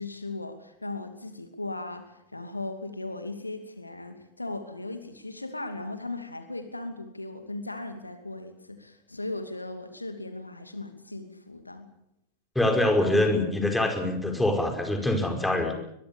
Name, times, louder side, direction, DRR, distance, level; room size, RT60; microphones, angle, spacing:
voice 1, 0.0-11.9, left 2 dB, 85° left, 8 dB, 2.7 m, -37 dB
voice 2, 12.5-15.8, left 1 dB, 5° left, 4 dB, 5.0 m, -24 dB
22.5 x 22.5 x 7.1 m, 0.79 s
figure-of-eight pair, 90°, 0 cm